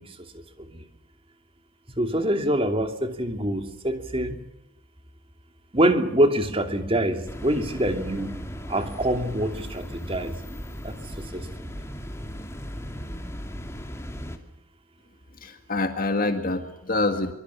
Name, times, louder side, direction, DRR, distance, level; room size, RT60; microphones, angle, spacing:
voice 1, 2.0-4.4 5.7-8.3 8.7-10.3 10.8-10.9 11.3-11.9, right 1 dB, 25° right, 7 dB, 2.7 m, -25 dB
sound 1, 7.3-14.4, equal, 15° left, 2.6 m, -37 dB
voice 2, 15.4-17.3, left 2 dB, 40° left, 7 dB, 1.9 m, -26 dB
24.5 x 24.5 x 7.2 m, 0.88 s
head